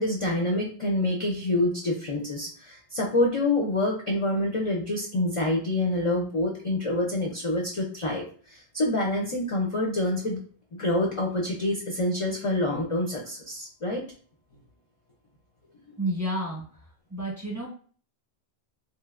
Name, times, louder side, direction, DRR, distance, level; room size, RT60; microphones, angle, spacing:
voice 1, 0.0-10.4 10.8-14.1, left 1 dB, 45° left, -1 dB, 0.5 m, -27 dB
voice 2, 16.0-16.6 17.1-17.7, right 1 dB, 20° right, -3 dB, 0.9 m, -30 dB
3.1 x 2.7 x 2.4 m, 0.43 s
omnidirectional pair, 1.1 m